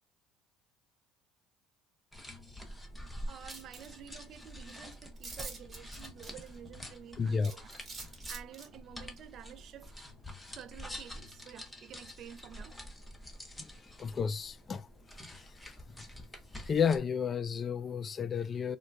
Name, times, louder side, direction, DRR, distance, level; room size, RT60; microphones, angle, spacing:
sound 1, 2.1-17.0, equal, 10° left, 0.8 m, -47 dB
voice 1, 3.2-7.7 8.3-10.1 10.5-12.8, right 10 dB, 55° right, 0.4 m, -50 dB
sound 2, 3.5-3.9 4.4-4.5 4.7-4.8 5.2-6.6 7.4-8.7, right 3 dB, 25° right, 1.1 m, -45 dB
voice 2, 7.2-7.5 13.6-14.9 15.3-15.5 16.7-18.8, left 6 dB, 35° left, 0.3 m, -32 dB
3.8 x 2.2 x 2.3 m
supercardioid pair, 80°, 0 cm